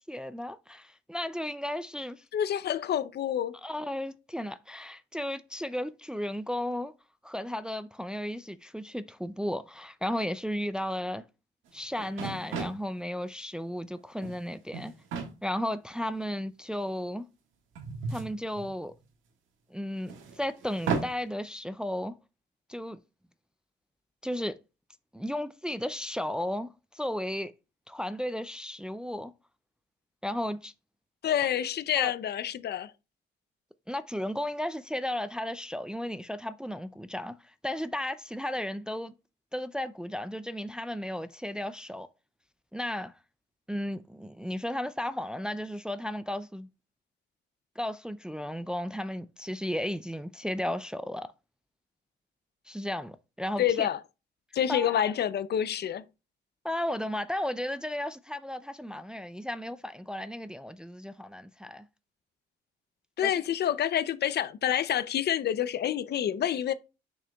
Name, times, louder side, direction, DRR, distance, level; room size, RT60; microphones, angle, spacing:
voice 1, 0.1-2.2 3.6-6.9 7.2-11.2 11.7-14.9 15.4-17.3 18.1-18.9 19.7-22.1 22.7-23.0 24.2-24.6 25.1-27.5 27.9-29.3 30.2-30.7 32.0-32.1 33.9-39.1 39.5-42.1 42.7-43.1 43.7-46.7 47.8-51.3 52.7-53.9 54.7-55.1 56.6-61.9 63.2-63.3, left 1 dB, 5° right, 0.4 m, -34 dB
voice 2, 2.3-3.6 31.2-32.9 53.6-54.0 54.5-56.0 63.2-66.7, left 10 dB, 55° left, 0.6 m, -28 dB
sound 1, 11.7-11.8 12.0-12.9 14.0-14.4 14.7-15.3 16.2-16.3 17.8-19.0 20.1-21.1, right 5 dB, 85° right, 1.6 m, -34 dB
6.4 x 6.3 x 2.3 m
cardioid pair, 90°, 20 cm